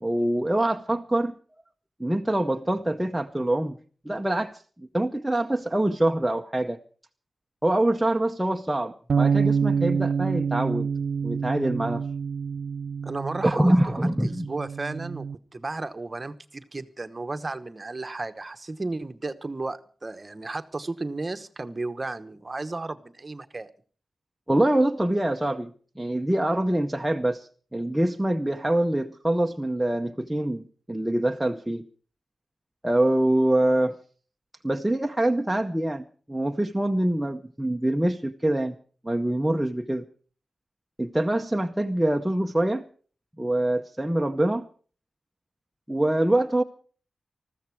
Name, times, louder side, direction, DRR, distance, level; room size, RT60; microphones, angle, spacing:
voice 1, 0.0-1.3 2.0-3.8 4.0-6.8 7.6-10.9 11.2-12.0 13.4-14.5 24.5-31.9 32.8-34.0 34.6-38.8 39.0-40.0 41.0-42.9 43.4-44.7 45.9-46.6, right 1 dB, 5° right, 2 dB, 0.7 m, -25 dB
sound 1, 9.1-15.3, right 6 dB, 75° right, 0.7 m, -27 dB
voice 2, 13.0-14.0 14.2-15.3 15.5-23.7, right 2 dB, 25° right, 10 dB, 1.1 m, -34 dB
20.5 x 14.5 x 4.7 m, 0.43 s
wide cardioid pair, 175°, 0 cm